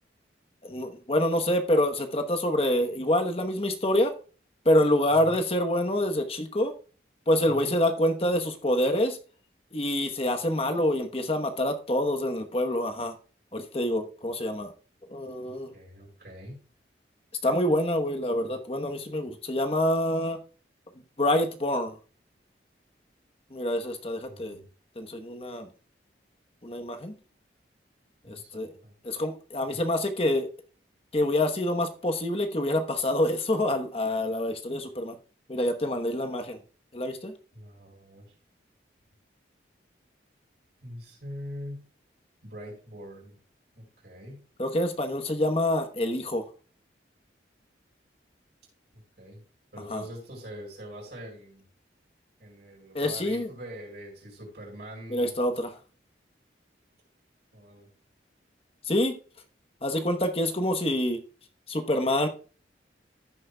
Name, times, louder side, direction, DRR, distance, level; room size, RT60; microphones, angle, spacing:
voice 1, 0.6-4.1 4.6-6.7 7.3-9.2 9.7-13.1 13.5-14.7 15.1-15.7 17.4-20.4 21.2-21.9 23.5-24.6 25.0-25.7 26.6-27.2 28.3-28.7 29.0-30.5 31.1-35.2 35.5-36.6 36.9-37.3 44.6-46.4 49.9-50.0 52.9-53.5 55.1-55.8 58.9-59.1 59.8-61.2 61.7-62.3, left 1 dB, 30° left, 6 dB, 1.0 m, -26 dB
voice 2, 5.1-5.4 7.5-7.7 15.5-16.6 24.3-24.7 28.2-28.9 37.5-38.3 40.8-41.8 42.4-43.4 43.7-44.4 49.2-49.4 49.7-51.6 52.4-55.4 57.5-57.9, equal, 65° right, -1 dB, 5.1 m, -43 dB
15.0 x 6.4 x 2.2 m, 0.39 s
head